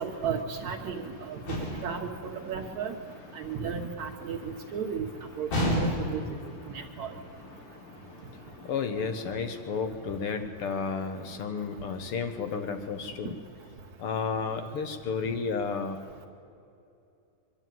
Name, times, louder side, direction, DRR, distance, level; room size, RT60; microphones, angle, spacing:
voice 1, 0.0-1.0 1.3-1.4 1.8-2.1 2.5-2.9 3.4-4.4 4.7-5.1 5.4-6.2 7.0-7.1, right 7 dB, 70° right, -1 dB, 2.4 m, -33 dB
voice 2, 1.0-2.0 2.4-4.8 5.3-5.4 5.7-13.4 14.0-16.0, left 5 dB, 65° left, 8 dB, 1.4 m, -35 dB
sound 1, 1.5-2.0 5.5-6.3, equal, 80° left, 6.1 m, -28 dB
24.0 x 12.5 x 9.2 m, 2.7 s
omnidirectional pair, 3.5 m